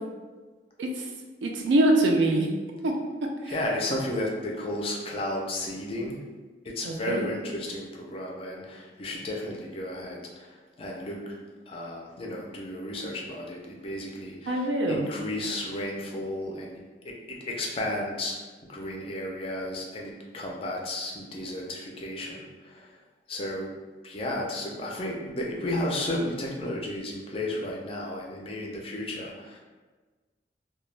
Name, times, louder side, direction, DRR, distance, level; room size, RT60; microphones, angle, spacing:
voice 1, 1.4-2.5 2.8-2.9 3.4-3.5 6.8-7.3 14.5-15.1, right 1 dB, 75° right, 1 dB, 0.4 m, -24 dB
voice 2, 3.4-6.2 6.6-11.4 11.7-16.8 17.0-23.0 23.3-23.7 24.0-29.6, left 1 dB, 30° left, -1 dB, 0.3 m, -33 dB
2.2 x 2.0 x 3.1 m, 1.3 s
head